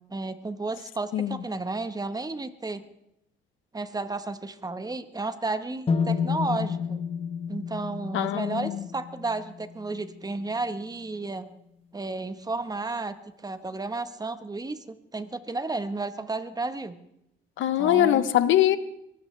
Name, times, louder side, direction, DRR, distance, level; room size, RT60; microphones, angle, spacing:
voice 1, 0.1-2.8 3.7-7.0 7.5-11.5 11.9-13.1 13.4-17.0 17.8-18.3, right 3 dB, 20° right, 11 dB, 1.2 m, -32 dB
voice 2, 1.1-1.4 8.1-8.9 17.6-18.8, left 12 dB, 80° left, 13 dB, 0.9 m, -23 dB
sound 1, 5.9-9.8, left 6 dB, 30° left, 1.0 m, -30 dB
22.5 x 16.0 x 3.3 m, 0.80 s
cardioid pair, 90°, 20 cm